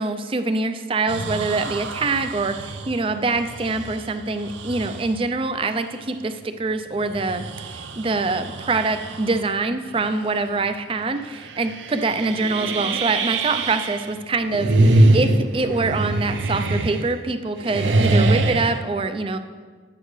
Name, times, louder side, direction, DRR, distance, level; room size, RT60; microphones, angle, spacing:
voice 1, 0.0-19.4, right 3 dB, 30° right, 9 dB, 0.4 m, -25 dB
sound 1, 1.1-5.2 5.8-5.9 6.9-9.5 9.9-10.3 10.6-10.7 11.3-14.1 14.4-17.3 17.6-18.8, right 2 dB, 85° right, 0.6 m, -24 dB
11.0 x 8.7 x 3.2 m, 1.6 s
head